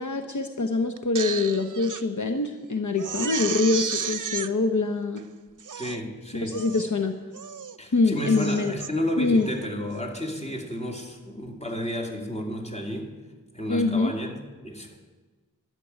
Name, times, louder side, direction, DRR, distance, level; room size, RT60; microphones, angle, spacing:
voice 1, 0.0-5.2 6.4-7.2 7.9-8.8 9.2-9.5 13.7-14.1, left 3 dB, 60° left, 6 dB, 0.8 m, -24 dB
Crying sobbing, 1.0-2.0 2.5-2.6 3.0-4.5 5.2-5.3 5.6-6.0 6.5-6.9 7.3-7.8 8.1-8.9 9.4-9.7, right 6 dB, 70° right, 0.6 m, -33 dB
voice 2, 5.8-6.6 7.8-13.1 13.5-14.3 14.6-15.0, equal, 20° left, 1 dB, 2.4 m, -32 dB
12.0 x 6.8 x 9.7 m, 1.3 s
wide cardioid pair, 45°, 33 cm